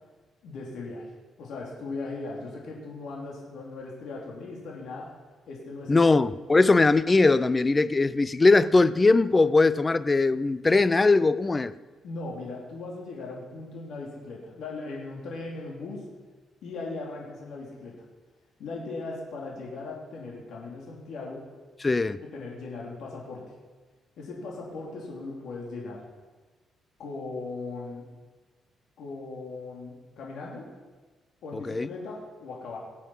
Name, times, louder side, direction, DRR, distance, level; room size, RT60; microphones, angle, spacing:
voice 1, 0.4-1.1 1.4-5.1 5.5-6.0 12.0-16.0 16.6-18.0 18.6-21.5 22.2-23.5 24.2-26.0 27.0-28.1 29.0-30.7 31.4-32.8, left 3 dB, 70° left, -2 dB, 2.8 m, -38 dB
voice 2, 5.9-11.7 21.8-22.2 31.5-31.9, left 3 dB, 20° left, 15 dB, 0.4 m, -21 dB
19.0 x 7.6 x 5.6 m, 1.3 s
cardioid pair, 135°, 0 cm